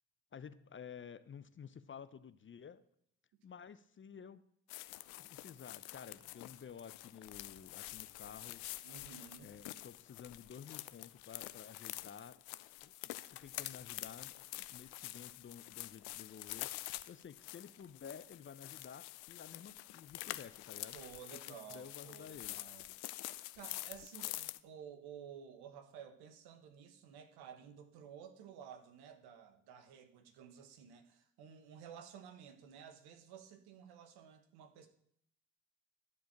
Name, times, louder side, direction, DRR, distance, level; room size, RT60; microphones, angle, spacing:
voice 1, 0.3-2.8 3.4-4.4 5.2-8.6 9.4-12.4 12.8-12.9 13.3-21.0 21.3-22.6, left 7 dB, 30° left, 14 dB, 0.7 m, -52 dB
sound 1, 4.7-24.6, left 18 dB, 70° left, 0.6 m, -47 dB
voice 2, 8.8-9.5 20.9-34.9, right 8 dB, 65° right, 8 dB, 1.4 m, -54 dB
12.0 x 4.6 x 7.4 m, 0.70 s
hypercardioid pair, 50°, 41 cm